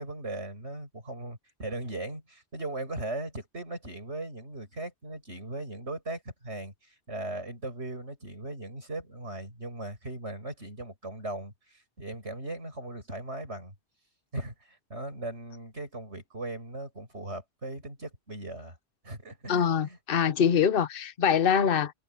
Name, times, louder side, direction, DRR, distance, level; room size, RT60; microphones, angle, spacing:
voice 1, 0.0-13.7 14.3-18.8 19.0-20.0, right 2 dB, 85° right, 7.9 m, -38 dB
voice 2, 19.5-21.9, left 7 dB, 60° left, 1.0 m, -24 dB
omnidirectional pair, 1.1 m